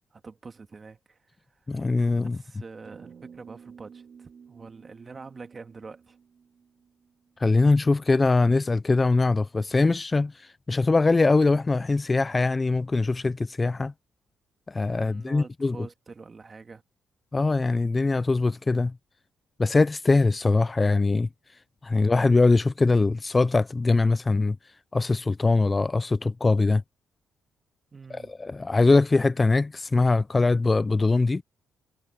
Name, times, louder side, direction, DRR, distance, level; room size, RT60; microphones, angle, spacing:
voice 1, 0.1-1.2 1.5-1.6 2.2-6.2 14.9-16.8 27.9-28.3, right 4 dB, 35° right, 1.8 m, -45 dB
voice 2, 1.7-2.4 7.4-13.9 14.7-15.9 17.3-18.9 19.6-21.3 21.8-24.6 24.9-26.8 28.1-31.4, left 3 dB, 25° left, 0.4 m, -22 dB
sound 1, 2.8-7.5, right 6 dB, 50° right, 2.6 m, -51 dB
cardioid pair, 90°, 0 cm